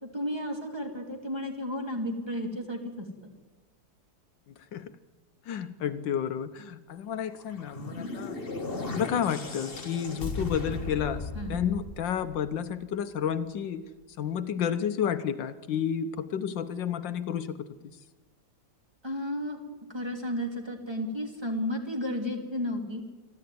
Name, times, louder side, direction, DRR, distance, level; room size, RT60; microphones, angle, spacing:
voice 1, 0.0-3.1 11.3-11.6 19.0-19.6 19.9-23.0, left 1 dB, 15° right, 2 dB, 3.0 m, -33 dB
voice 2, 5.5-8.4 8.9-13.8 14.2-17.7, left 8 dB, 75° left, 11 dB, 1.5 m, -31 dB
sound 1, 7.4-12.7, left 3 dB, 30° left, 2.0 m, -37 dB
26.5 x 12.5 x 9.4 m, 1.3 s
omnidirectional pair, 2.0 m